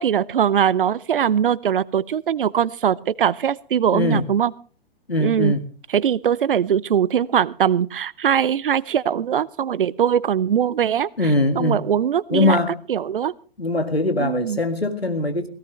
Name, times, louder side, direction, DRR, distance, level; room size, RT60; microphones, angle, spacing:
voice 1, 0.0-4.5 5.2-5.5 5.9-11.1 11.6-12.6 12.9-13.3 14.2-14.6, right 9 dB, 60° right, 21 dB, 0.7 m, -21 dB
voice 2, 3.9-4.3 5.1-5.7 11.2-11.8 12.3-12.8 13.6-15.5, left 2 dB, 90° left, 7 dB, 1.9 m, -21 dB
17.5 x 16.5 x 3.2 m, 0.41 s
figure-of-eight pair, 115°, 30 cm